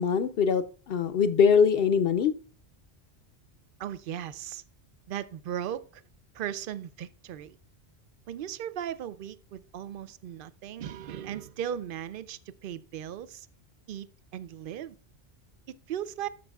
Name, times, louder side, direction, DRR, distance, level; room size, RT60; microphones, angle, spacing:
voice 1, 0.0-2.3, left 6 dB, 65° left, 0.7 m, -23 dB
voice 2, 3.8-4.6 5.1-6.0 6.3-7.6 8.3-13.5 13.9-14.1 14.3-15.0 15.7-16.3, right 10 dB, 60° right, 0.6 m, -37 dB
13.0 x 6.2 x 2.3 m
omnidirectional pair, 1.2 m